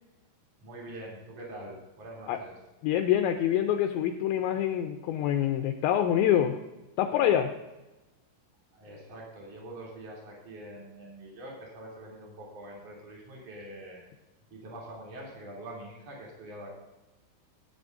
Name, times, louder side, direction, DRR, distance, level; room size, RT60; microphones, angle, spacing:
voice 1, 0.6-2.5 8.7-14.0 14.5-16.7, right 1 dB, 35° right, -4 dB, 3.6 m, -44 dB
voice 2, 2.8-6.6 7.0-7.5, left 10 dB, 80° left, 6 dB, 2.7 m, -26 dB
17.0 x 9.4 x 2.6 m, 1.1 s
omnidirectional pair, 5.6 m